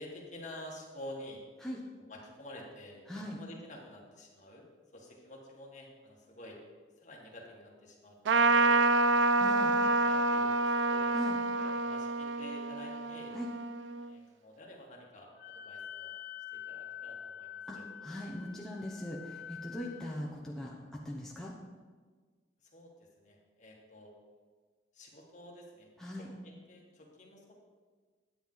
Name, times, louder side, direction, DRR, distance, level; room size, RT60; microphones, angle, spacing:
voice 1, 0.0-1.5 2.0-4.7 4.9-6.6 7.0-9.3 9.9-11.1 11.6-13.4 14.0-16.2 16.5-17.9 22.6-24.1 24.9-27.5, left 1 dB, 40° left, -1 dB, 1.9 m, -50 dB
Trumpet, 8.3-14.1, right 3 dB, 75° right, 0.4 m, -28 dB
voice 2, 9.4-9.7 11.1-11.4 13.3-13.5 17.7-17.8 18.0-20.7 21.0-21.5 26.0-26.3, left 1 dB, 5° left, -4 dB, 1.0 m, -40 dB
Wind instrument woodwind instrument, 15.4-20.1, left 9 dB, 65° left, 1.3 m, -46 dB
10.0 x 8.9 x 4.0 m, 1.5 s
head